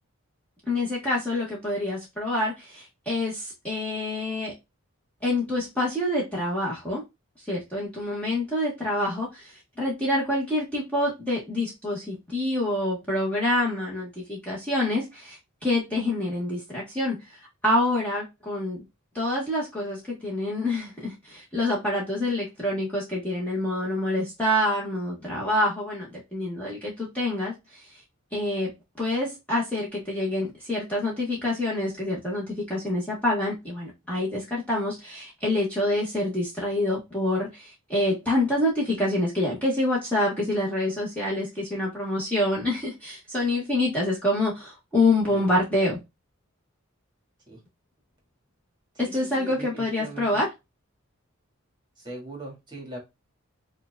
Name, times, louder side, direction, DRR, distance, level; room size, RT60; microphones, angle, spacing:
voice 1, 0.7-4.5 5.2-7.0 7.5-17.2 17.6-18.8 19.1-27.5 28.3-28.7 29.0-46.0 49.0-50.5, left 1 dB, 5° left, 1.5 m, -27 dB
voice 2, 48.9-50.4 52.0-53.0, right 2 dB, 20° right, 2.1 m, -41 dB
5.8 x 2.7 x 2.3 m
head